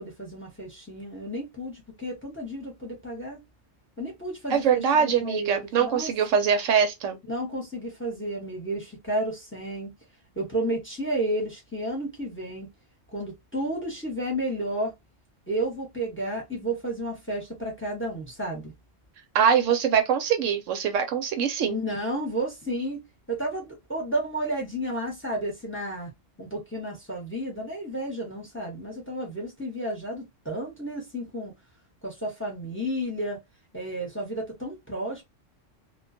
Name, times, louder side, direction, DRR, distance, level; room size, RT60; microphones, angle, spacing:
voice 1, 0.0-3.4 4.0-6.1 7.3-9.9 10.4-12.7 13.1-14.9 15.5-18.7 21.7-26.1 26.4-31.5 32.0-33.4 33.7-35.2, right 1 dB, 10° left, 0.8 m, -32 dB
voice 2, 4.5-7.2 19.3-21.8, right 7 dB, 80° right, 1.0 m, -23 dB
2.3 x 2.2 x 2.6 m
omnidirectional pair, 1.3 m